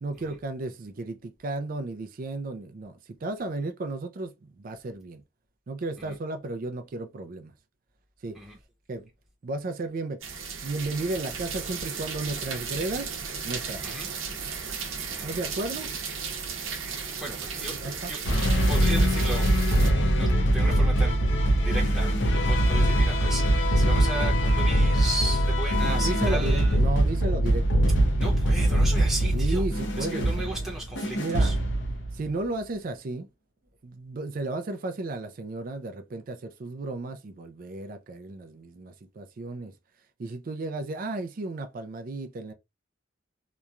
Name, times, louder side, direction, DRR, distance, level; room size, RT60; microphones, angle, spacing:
voice 1, 0.0-5.2 5.7-7.5 8.2-8.4 8.9-9.1 9.4-10.2 10.6-13.1 13.4-14.0 15.2-15.9 17.7-18.1 25.8-27.7 29.3-30.3 31.1-31.5 32.1-33.3 33.8-39.7 40.2-42.5, right 2 dB, 45° right, 0.4 m, -34 dB
sound 1, 10.2-19.9, right 5 dB, 85° right, 0.8 m, -35 dB
voice 2, 15.0-15.4 17.2-18.2 18.7-19.5 19.9-26.8 28.2-29.7 29.9-31.5, right 2 dB, ahead, 0.9 m, -35 dB
sound 2, 18.2-32.3, right 1 dB, 60° left, 0.7 m, -23 dB
2.9 x 2.2 x 2.4 m
head